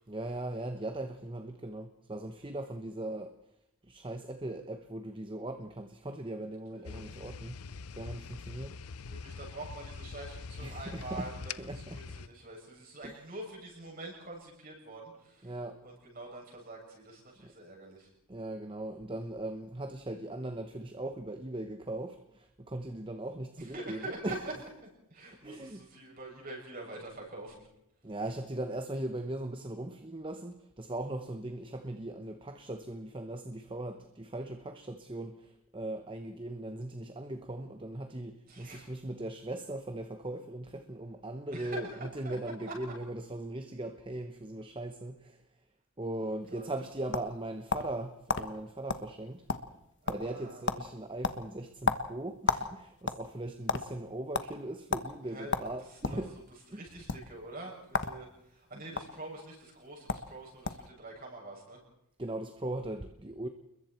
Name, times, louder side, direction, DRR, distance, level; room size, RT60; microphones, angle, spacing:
voice 1, 0.1-3.4 3.8-7.6 7.9-8.8 10.6-11.3 11.6-12.0 13.0-13.1 15.4-15.8 17.4-17.5 18.3-24.4 25.4-25.8 28.0-41.9 42.1-45.4 46.0-49.4 50.1-56.3 56.7-56.8 58.7-58.8 62.2-63.5, right 1 dB, 20° right, 1.0 m, -39 dB
voice 2, 6.7-7.1 9.1-15.6 15.8-18.1 23.6-24.4 25.1-27.6 38.5-38.9 41.5-42.4 42.7-42.8 46.2-46.7 50.0-50.7 55.2-55.5 55.8-56.2 56.7-61.8, right 2 dB, 40° right, 7.5 m, -45 dB
sound 1, 6.8-12.3, left 5 dB, 80° left, 0.7 m, -44 dB
sound 2, 46.6-48.0 48.3-48.5 48.9-49.1 49.3-49.8 50.1-50.4 50.7-50.9 51.2-52.7 53.0-53.8 54.3-54.5 54.9-55.1 55.5-56.2 57.0-57.2 57.9-58.2 58.4-59.0 59.8-59.9 60.1-60.3 60.6-60.9, left 4 dB, 55° left, 1.3 m, -31 dB
29.5 x 21.5 x 4.5 m
head